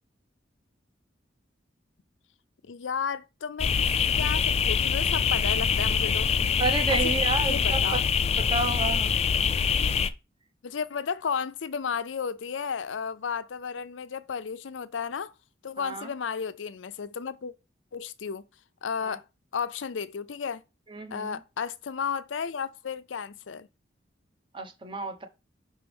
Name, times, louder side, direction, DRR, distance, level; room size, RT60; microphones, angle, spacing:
voice 1, 2.7-3.9 4.2-6.3 6.9-7.1 7.4-8.0 10.6-15.3 15.6-17.5 17.9-18.4 18.8-19.2 19.5-20.6 21.1-23.7, left 6 dB, 90° left, 0.5 m, -33 dB
sound 1, 3.6-10.1, left 6 dB, 35° left, 0.4 m, -24 dB
voice 2, 6.6-8.0 8.4-9.2 15.8-16.1 19.0-19.2 20.9-21.4 24.5-25.3, right 3 dB, 25° right, 1.0 m, -30 dB
6.0 x 4.5 x 3.5 m
head